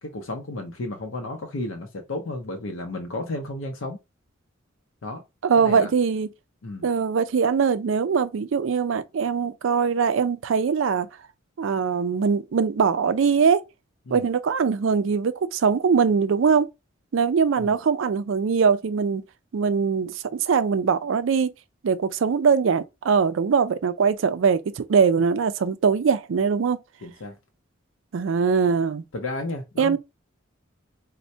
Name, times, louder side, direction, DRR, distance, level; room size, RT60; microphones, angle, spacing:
voice 1, 0.0-4.0 5.0-5.2 5.6-5.9 6.6-6.9 14.1-14.2 17.6-17.8 27.0-27.4 29.1-30.0, left 2 dB, 70° left, 0.6 m, -33 dB
voice 2, 5.4-6.3 6.8-11.1 11.6-13.6 14.1-16.7 17.1-19.2 19.5-21.5 21.8-26.8 28.1-29.0 29.8-30.0, right 6 dB, 65° right, 0.4 m, -22 dB
4.2 x 2.1 x 2.7 m
head